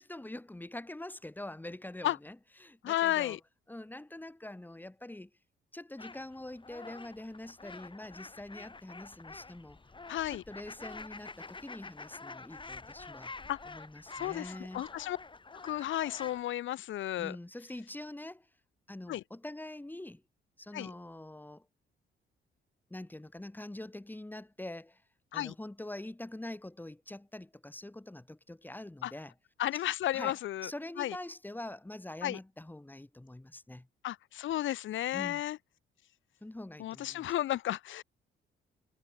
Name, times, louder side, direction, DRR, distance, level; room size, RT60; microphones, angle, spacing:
voice 1, 0.0-3.4 3.7-5.3 5.7-9.8 10.3-13.3 13.6-14.8 17.2-18.5 18.9-20.2 20.6-21.7 22.9-25.0 25.3-29.3 30.1-33.9 35.1-35.4 36.4-37.3, left 1 dB, 10° left, 2.6 m, -45 dB
voice 2, 2.8-3.4 10.1-10.4 13.5-13.6 14.1-15.2 15.6-17.4 19.1-19.2 20.7-20.9 25.3-25.5 29.0-29.1 29.6-30.7 31.0-31.2 32.2-32.4 34.0-35.6 36.8-38.0, left 13 dB, 75° left, 1.3 m, -33 dB
sound 1, 6.0-16.4, left 3 dB, 25° left, 6.7 m, -48 dB
cardioid pair, 90°, 20 cm